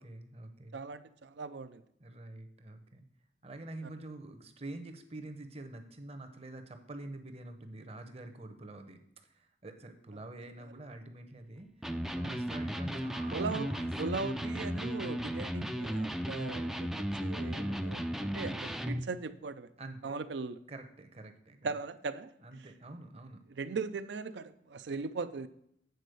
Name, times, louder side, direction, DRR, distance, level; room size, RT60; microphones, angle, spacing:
voice 1, 0.0-0.8 2.0-3.0 3.4-13.9 19.8-20.2 20.7-21.7 22.4-23.4, right 2 dB, 35° right, 7 dB, 0.8 m, -47 dB
voice 2, 0.7-1.8 3.8-3.9 13.3-13.7 14.0-19.7 20.0-20.6 21.6-22.3 23.6-25.5, right 4 dB, 70° right, 12 dB, 0.5 m, -39 dB
Electric guitar, 11.8-19.1, equal, ahead, 0.3 m, -35 dB
8.0 x 4.2 x 6.7 m, 0.73 s
head